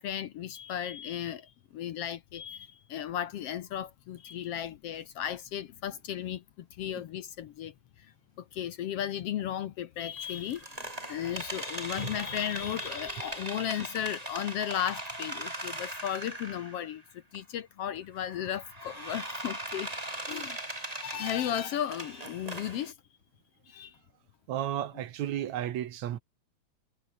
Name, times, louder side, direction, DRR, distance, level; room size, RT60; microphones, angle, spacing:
voice 1, 0.0-8.1 8.4-17.0 17.3-19.9 20.3-20.6 21.0-22.9 23.7-24.0, left 10 dB, 65° left, 1.7 m, -35 dB
sound 1, 10.2-16.9 17.3-17.4 18.2-22.9, right 1 dB, 10° right, 4.4 m, -39 dB
voice 2, 24.5-26.2, right 11 dB, 75° right, 2.5 m, -33 dB
omnidirectional pair, 3.4 m